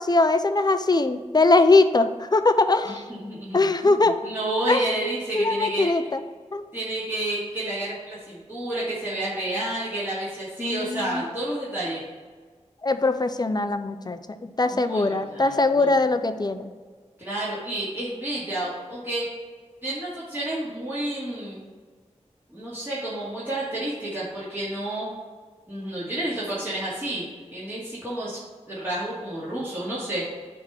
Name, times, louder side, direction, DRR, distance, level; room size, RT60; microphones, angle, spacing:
voice 1, 0.0-3.0 3.5-4.2 4.7-4.9 5.3-6.2 6.5-6.7 10.6-11.2 12.8-16.7, left 3 dB, 35° left, 10 dB, 0.5 m, -21 dB
voice 2, 2.9-3.9 4.2-5.9 6.7-12.0 14.7-15.9 17.2-19.2 19.8-21.7 22.5-25.1 25.7-28.4 28.7-30.2, right 1 dB, 20° right, -9 dB, 2.3 m, -30 dB
8.9 x 3.6 x 5.8 m, 1.5 s
wide cardioid pair, 80°, 12 cm